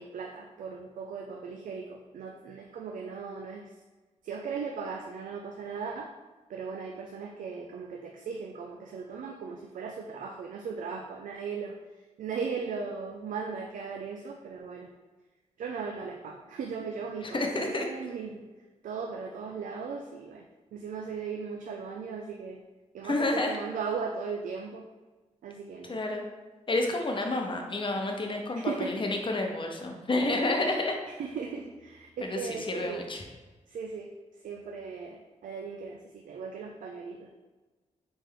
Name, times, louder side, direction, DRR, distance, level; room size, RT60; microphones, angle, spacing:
voice 1, 0.0-3.8 4.2-6.1 6.5-14.9 15.6-18.4 18.8-20.4 20.7-22.6 22.9-24.8 25.4-26.0 28.5-29.0 31.1-33.0 33.7-37.3, right 5 dB, 90° right, 1 dB, 0.4 m, -37 dB
voice 2, 17.3-17.9 23.0-23.6 25.8-26.2 26.7-30.9 32.2-33.2, left 2 dB, 40° left, 2 dB, 0.8 m, -29 dB
4.0 x 3.4 x 3.7 m, 1.3 s
cardioid pair, 65°, 13 cm